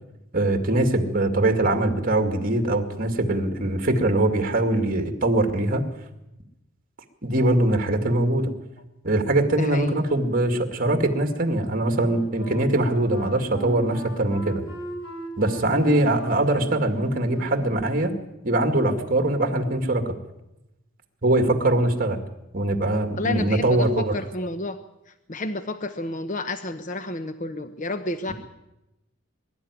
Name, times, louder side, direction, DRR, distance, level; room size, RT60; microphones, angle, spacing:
voice 1, 0.3-5.9 7.2-8.5 9.0-14.6 15.4-18.1 18.4-20.1 21.2-22.2 22.5-24.2, right 1 dB, 45° right, 6 dB, 2.2 m, -22 dB
voice 2, 9.6-10.0 23.2-24.8 25.3-28.3, left 2 dB, 40° left, 9 dB, 0.9 m, -30 dB
Wind instrument woodwind instrument, 12.0-17.9, right 1 dB, 90° left, 4.5 m, -38 dB
23.0 x 12.5 x 9.8 m, 0.93 s
head